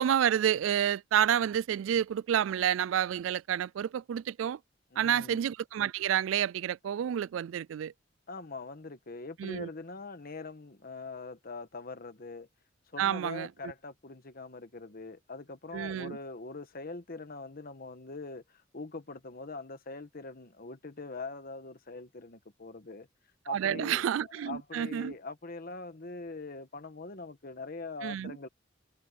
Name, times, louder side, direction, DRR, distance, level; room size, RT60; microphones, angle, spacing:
voice 1, 0.0-4.6 5.0-7.9 9.4-9.7 13.0-13.5 15.7-16.2 23.5-25.1 28.0-28.4, right 9 dB, 90° right, 0.3 m, -29 dB
voice 2, 4.9-5.5 8.3-12.5 12.9-23.1 23.4-28.5, left 3 dB, 50° left, 1.4 m, -43 dB
head